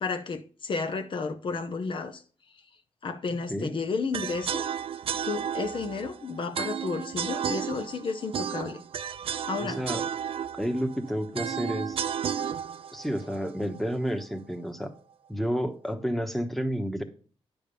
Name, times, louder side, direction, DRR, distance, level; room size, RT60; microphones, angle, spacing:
voice 1, 0.0-2.2 2.5-2.6 3.0-4.6 5.2-8.8 9.5-9.8, left 4 dB, 50° left, 0.7 m, -32 dB
sound 1, 4.1-14.2, right 8 dB, 60° right, 0.4 m, -33 dB
voice 2, 9.6-10.0 10.6-12.0 12.9-14.9 15.3-17.0, equal, ahead, 1.1 m, -30 dB
10.0 x 3.5 x 6.7 m
cardioid pair, 80°, 11 cm